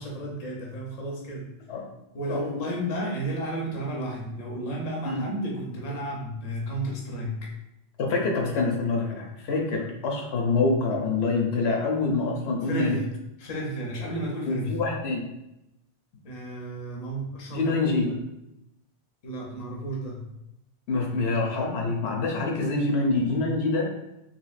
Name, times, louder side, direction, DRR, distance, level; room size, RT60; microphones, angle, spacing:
voice 1, 0.0-1.5 2.1-7.5 12.6-13.1 13.4-14.8 16.2-18.2 19.2-20.3, right 1 dB, 40° left, -2 dB, 0.6 m, -32 dB
voice 2, 8.0-13.0 14.5-15.2 17.5-18.1 20.9-23.9, left 3 dB, 75° left, 0 dB, 0.9 m, -26 dB
3.1 x 2.6 x 2.4 m, 0.86 s
omnidirectional pair, 1.1 m